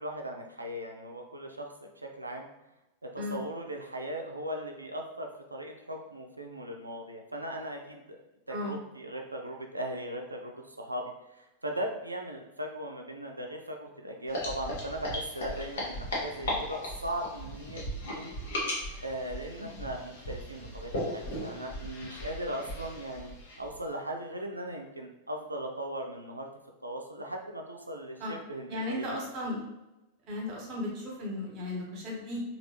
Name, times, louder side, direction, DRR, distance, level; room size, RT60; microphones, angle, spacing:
voice 1, 0.0-2.5 3.0-8.2 8.5-18.4 19.0-26.5 26.8-29.2, right 1 dB, 85° right, 2 dB, 0.4 m, -38 dB
sound 1, 14.3-23.8, left 1 dB, 60° left, 0.9 m, -37 dB
voice 2, 28.7-29.6 30.3-32.4, left 1 dB, 35° right, -2 dB, 1.1 m, -35 dB
3.3 x 2.4 x 2.9 m, 0.99 s
figure-of-eight pair, 90°, 0 cm